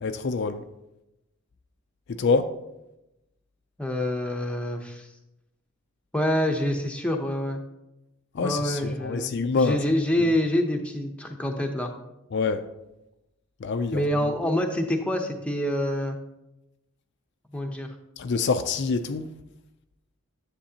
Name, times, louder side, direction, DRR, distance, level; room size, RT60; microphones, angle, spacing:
voice 1, 0.0-0.6 2.1-2.5 8.3-9.8 12.3-12.7 13.6-14.0 18.2-19.3, left 4 dB, 50° left, 0.4 m, -26 dB
voice 2, 3.8-5.1 6.1-7.6 8.4-11.9 13.9-16.2 17.5-17.9, left 1 dB, 5° left, 0.7 m, -26 dB
10.0 x 7.4 x 2.8 m
head